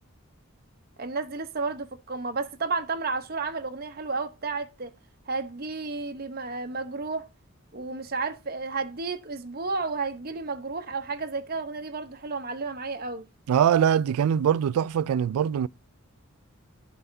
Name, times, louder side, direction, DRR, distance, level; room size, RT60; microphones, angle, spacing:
voice 1, 1.0-4.9 5.3-7.3 7.7-13.2, right 4 dB, 45° right, 0.9 m, -32 dB
voice 2, 13.5-15.7, right 8 dB, 85° right, 0.3 m, -22 dB
12.0 x 5.5 x 2.6 m
head